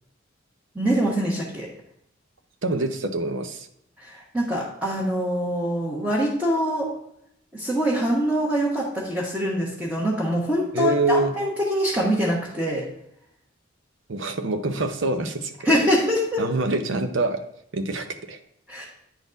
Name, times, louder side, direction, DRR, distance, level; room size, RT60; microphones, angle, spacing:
voice 1, 0.7-1.7 4.0-6.9 7.5-12.8 15.6-16.4 18.7-18.8, equal, 5° right, -6 dB, 1.3 m, -24 dB
voice 2, 2.6-3.7 10.7-11.3 14.1-15.8 16.4-17.4 17.7-18.4, right 2 dB, 70° right, 8 dB, 0.7 m, -25 dB
9.5 x 4.1 x 3.9 m, 0.75 s
head